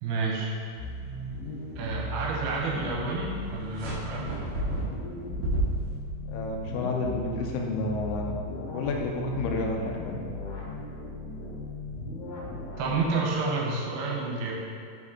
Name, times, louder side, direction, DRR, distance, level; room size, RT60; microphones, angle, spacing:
voice 1, 0.0-0.5 1.8-4.3 12.8-14.5, right 4 dB, 80° right, -2 dB, 2.8 m, -29 dB
sound 1, 0.8-13.1, equal, 70° left, 2.7 m, -37 dB
sound 2, 3.8-6.1, equal, 60° right, 2.1 m, -31 dB
voice 2, 6.3-8.4 8.7-10.2, left 3 dB, 85° left, 1 dB, 2.6 m, -30 dB
6.0 x 5.3 x 3.7 m, 2.3 s
omnidirectional pair, 4.6 m